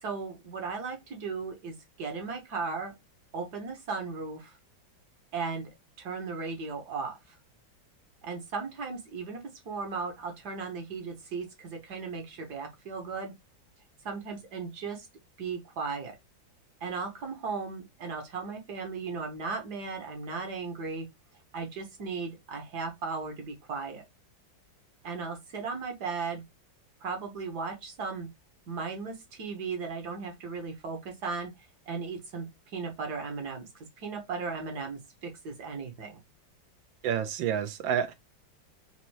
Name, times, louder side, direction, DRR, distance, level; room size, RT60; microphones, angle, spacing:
voice 1, 0.0-2.9 3.3-4.6 5.3-5.7 6.0-7.4 8.2-13.3 14.0-15.1 15.4-16.1 16.8-21.1 21.5-24.0 25.0-26.4 27.0-28.3 28.7-31.5 31.9-36.2, right 4 dB, 60° right, 1.5 m, -36 dB
voice 2, 37.0-38.1, right 9 dB, 80° right, 1.4 m, -29 dB
4.2 x 2.6 x 2.9 m
omnidirectional pair, 2.1 m